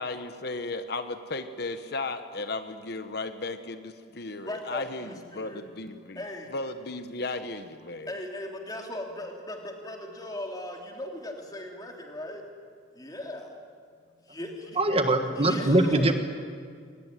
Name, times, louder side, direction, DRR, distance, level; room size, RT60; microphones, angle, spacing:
voice 1, 0.0-6.2 6.5-8.1, left 3 dB, 55° left, 9 dB, 1.1 m, -35 dB
voice 2, 4.4-5.6 6.1-6.5 8.1-12.4 12.9-13.6 14.2-14.8 15.4-16.1, left 1 dB, 20° left, 2 dB, 3.2 m, -38 dB
voice 3, 14.8-16.1, right 2 dB, 30° right, 7 dB, 1.5 m, -22 dB
23.0 x 19.5 x 9.9 m, 2.1 s
head